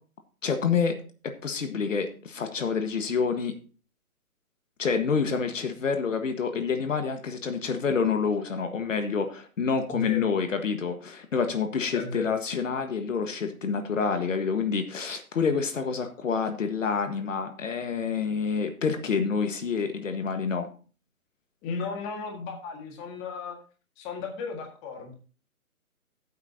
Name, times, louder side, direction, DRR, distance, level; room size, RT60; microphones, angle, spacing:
voice 1, 0.4-1.0 1.2-3.5 4.8-20.7, left 5 dB, 60° left, 7 dB, 1.6 m, -28 dB
voice 2, 9.9-10.3 11.9-12.3 21.6-23.6 24.0-25.1, left 4 dB, 15° left, 2 dB, 1.8 m, -35 dB
14.5 x 8.4 x 2.8 m, 0.37 s
hypercardioid pair, 155°, 44 cm